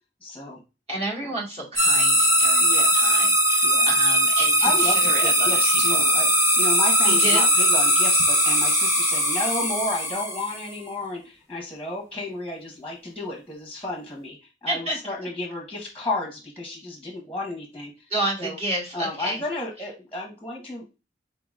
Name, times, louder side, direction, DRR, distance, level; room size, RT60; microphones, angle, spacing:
voice 1, 0.2-0.6 2.6-3.1 3.6-3.9 4.6-14.4 14.6-17.9 18.4-18.6 18.9-20.9, left 2 dB, 5° left, -1 dB, 1.0 m, -32 dB
voice 2, 0.9-6.0 7.0-7.4 14.7-15.0 18.1-19.4, right 1 dB, 35° right, -4 dB, 1.7 m, -30 dB
sound 1, 1.8-10.7, equal, 15° right, 0.8 m, -20 dB
4.3 x 3.8 x 2.4 m, 0.28 s
head